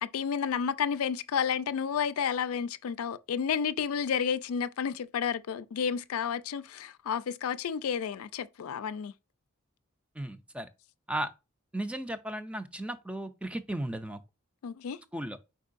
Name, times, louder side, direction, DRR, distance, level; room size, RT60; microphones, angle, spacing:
voice 1, 0.0-9.1 14.6-15.0, left 7 dB, 90° left, 0.4 m, -31 dB
voice 2, 10.2-10.7 11.1-11.3 11.7-14.2 15.1-15.4, right 1 dB, 5° right, 0.3 m, -35 dB
4.6 x 4.5 x 2.5 m
head